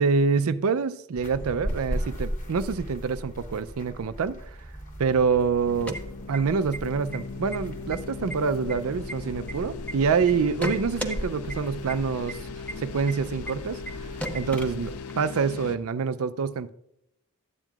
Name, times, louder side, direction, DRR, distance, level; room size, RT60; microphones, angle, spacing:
voice 1, 0.0-4.4 5.0-6.0 6.3-12.4 12.8-13.8 14.3-16.7, right 5 dB, 70° right, 0.4 m, -26 dB
sound 1, 1.2-14.9, equal, 40° left, 1.3 m, -38 dB
sound 2, 5.6-6.8 7.1-7.2 7.5-8.0 8.3-9.9 10.3-11.2 11.5-11.6 11.9-12.0 12.3-12.4 12.7-12.8 13.1-13.2 13.5-13.6 13.9-14.0 14.2-15.2, right 1 dB, 5° left, 0.8 m, -34 dB
sound 3, 5.7-15.8, left 4 dB, 80° left, 0.5 m, -39 dB
12.5 x 9.0 x 2.4 m
head